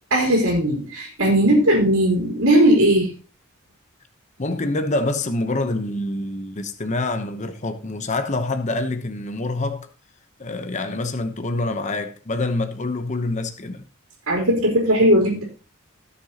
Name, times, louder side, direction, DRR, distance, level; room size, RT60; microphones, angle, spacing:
voice 1, 0.1-3.1 14.3-15.4, right 1 dB, 75° right, 3.9 m, -18 dB
voice 2, 4.4-9.9 10.4-13.8, left 2 dB, 35° left, 0.9 m, -26 dB
17.5 x 7.0 x 2.9 m
head